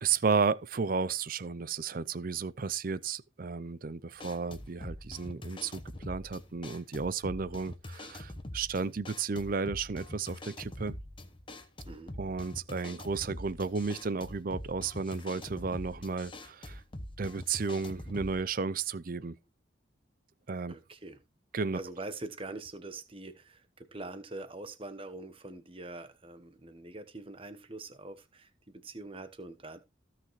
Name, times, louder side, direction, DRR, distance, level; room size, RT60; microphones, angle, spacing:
voice 1, 0.0-11.0 12.2-16.8 17.2-19.4 20.5-20.7 21.5-21.8, right 5 dB, 45° right, 0.5 m, -33 dB
sound 1, 4.2-18.4, left 1 dB, 25° left, 1.0 m, -44 dB
voice 2, 20.7-21.2 21.7-29.8, right 2 dB, 30° right, 1.1 m, -44 dB
15.5 x 5.9 x 3.1 m
head